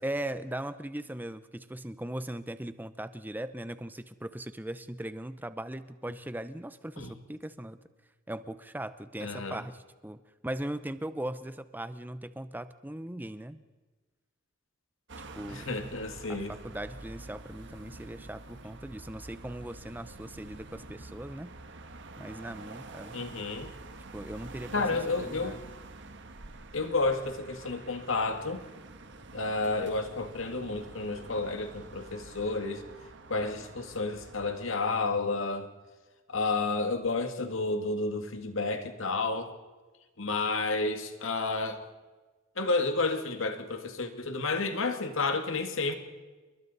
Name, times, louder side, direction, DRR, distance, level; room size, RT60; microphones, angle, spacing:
voice 1, 0.0-7.8 8.3-13.6 15.3-15.7 16.3-21.5 22.2-23.2 24.1-25.6, right 1 dB, 10° right, 12 dB, 0.7 m, -39 dB
voice 2, 9.2-9.6 15.5-16.5 23.1-23.7 24.7-25.6 26.7-28.6 29.3-32.8 33.3-35.7 36.3-39.5 40.2-41.9 42.6-45.9, left 3 dB, 65° left, 6 dB, 1.9 m, -31 dB
Heavy-Traffic-and-Jet-Airliner, 15.1-34.7, right 2 dB, 60° right, 1.4 m, -47 dB
29.0 x 22.5 x 4.1 m, 1.3 s
head